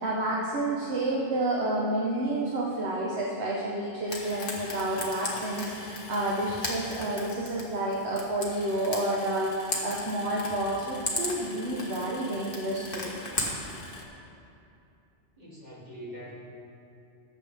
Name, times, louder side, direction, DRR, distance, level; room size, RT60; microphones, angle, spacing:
voice 1, 0.0-13.2, right 1 dB, 65° right, -4 dB, 1.3 m, -30 dB
Frying (food), 4.1-14.0, left 2 dB, 50° left, 1.6 m, -37 dB
voice 2, 15.4-16.3, equal, 35° right, -8 dB, 2.9 m, -43 dB
18.5 x 7.5 x 3.5 m, 2.7 s
omnidirectional pair, 1.2 m